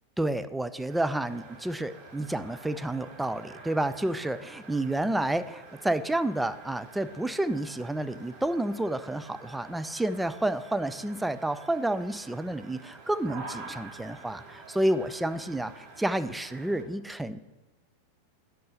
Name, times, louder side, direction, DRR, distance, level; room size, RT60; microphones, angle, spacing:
voice 1, 0.2-17.4, right 1 dB, 5° right, 13 dB, 0.3 m, -30 dB
sound 1, 0.9-16.8, right 4 dB, 35° right, 1.1 m, -48 dB
7.7 x 3.8 x 6.7 m, 1.1 s
figure-of-eight pair, 90°, 0 cm